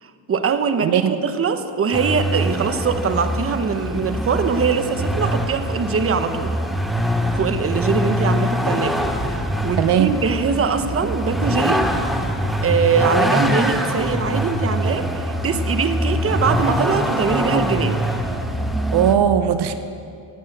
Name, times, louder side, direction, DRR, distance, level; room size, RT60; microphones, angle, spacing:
voice 1, 0.0-6.6 7.4-9.1 9.6-11.8 12.6-18.0, right 5 dB, 30° right, 9 dB, 1.0 m, -22 dB
voice 2, 0.8-1.1 9.8-10.1 18.9-19.7, right 9 dB, 65° right, 10 dB, 0.9 m, -18 dB
Vehicle, 1.9-19.2, equal, ahead, 1.1 m, -23 dB
17.5 x 8.8 x 7.9 m, 2.5 s
cardioid pair, 115°, 43 cm